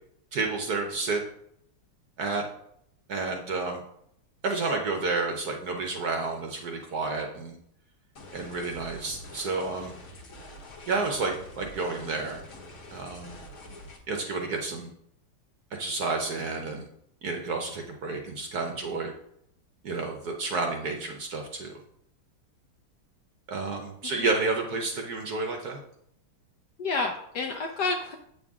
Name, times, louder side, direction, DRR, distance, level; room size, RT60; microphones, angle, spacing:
voice 1, 0.3-1.2 2.2-2.4 3.1-3.8 4.4-7.6 8.3-9.9 10.9-12.4 12.9-13.4 14.1-14.9 15.7-16.9 17.2-19.1 19.8-21.7 23.5-25.8, right 3 dB, 60° right, 3 dB, 1.1 m, -30 dB
sound 1, 8.2-14.0, left 1 dB, 45° left, 1.5 m, -46 dB
voice 2, 26.8-28.2, left 3 dB, 70° left, 3 dB, 1.0 m, -30 dB
8.5 x 6.7 x 3.6 m, 0.72 s
omnidirectional pair, 2.4 m